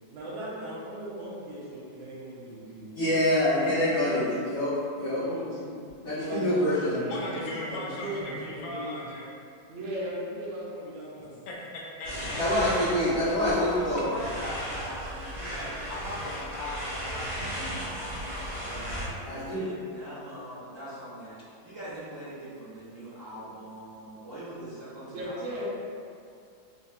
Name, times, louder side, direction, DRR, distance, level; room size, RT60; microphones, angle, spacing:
voice 1, 0.1-2.9 3.5-4.3 5.1-5.8 6.2-8.9 9.7-11.4 12.9-14.0 25.1-25.7, equal, 90° right, -7 dB, 1.5 m, -37 dB
voice 2, 2.9-5.2 6.0-7.0 12.3-14.0 19.2-19.6, left 1 dB, 55° left, -12 dB, 1.0 m, -26 dB
voice 3, 7.1-9.3 11.2-12.4 13.2-13.3, left 1 dB, 80° left, -3 dB, 1.3 m, -38 dB
sound 1, 12.0-19.1, equal, 20° right, 0.8 m, -36 dB
voice 4, 13.4-25.7, equal, 55° right, -11 dB, 1.0 m, -41 dB
4.2 x 2.7 x 2.3 m, 2.3 s
omnidirectional pair, 2.1 m